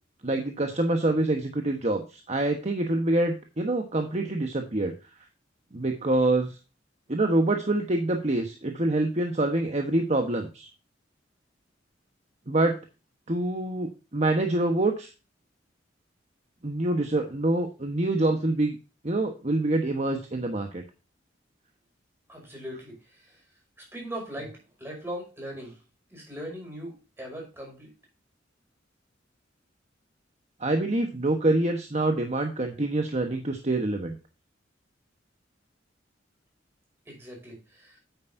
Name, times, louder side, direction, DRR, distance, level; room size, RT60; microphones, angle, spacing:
voice 1, 0.2-4.9 5.7-6.5 7.1-10.7 12.5-12.8 13.3-15.1 16.6-18.8 19.0-20.8 30.6-34.2, right 2 dB, 40° right, 4 dB, 1.2 m, -26 dB
voice 2, 22.3-23.4 23.8-25.8 26.1-27.9 37.1-38.0, equal, 15° right, -1 dB, 5.6 m, -40 dB
9.5 x 8.8 x 2.7 m, 0.31 s
head